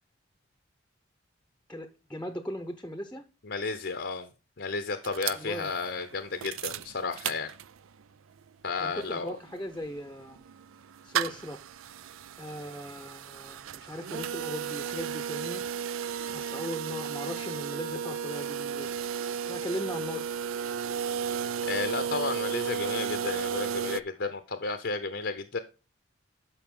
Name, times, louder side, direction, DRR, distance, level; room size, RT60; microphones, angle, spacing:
voice 1, 1.7-3.2 5.3-5.7 8.8-10.4 11.0-11.6 12.4-15.6 16.3-18.9 19.5-20.3, equal, 5° left, 0.7 m, -38 dB
voice 2, 3.4-4.3 4.6-7.5 8.6-9.4 21.7-25.6, left 4 dB, 55° left, 0.7 m, -33 dB
sound 1, 5.0-8.0 8.4-8.5 8.7-24.0, right 8 dB, 90° right, 0.4 m, -34 dB
11.5 x 5.5 x 3.7 m
head